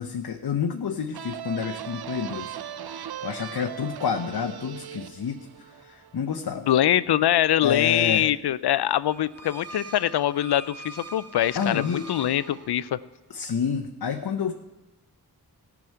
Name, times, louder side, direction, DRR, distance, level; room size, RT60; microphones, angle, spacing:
voice 1, 0.0-2.6 2.8-6.6 7.6-8.3 11.5-12.1 13.3-14.5, left 7 dB, 70° left, 4 dB, 0.9 m, -29 dB
sound 1, 1.1-6.6, right 10 dB, 75° right, 0.6 m, -38 dB
voice 2, 6.7-13.0, left 12 dB, 90° left, 18 dB, 0.5 m, -23 dB
sound 2, 9.0-13.2, right 3 dB, 40° right, 0.8 m, -43 dB
14.0 x 6.1 x 9.1 m, 1.0 s
cardioid pair, 60°, 38 cm